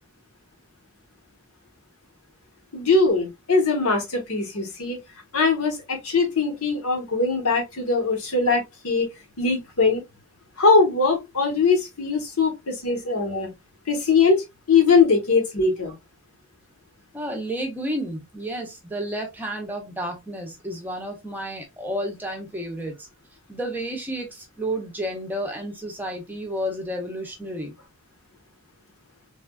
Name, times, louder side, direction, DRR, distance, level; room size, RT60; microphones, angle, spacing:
voice 1, 2.7-5.0 5.3-9.1 9.4-10.0 10.6-13.5 13.9-15.9, left 4 dB, 80° left, 1.1 m, -21 dB
voice 2, 17.1-23.1 23.5-27.8, equal, 10° right, 0.6 m, -31 dB
3.3 x 2.2 x 2.2 m
head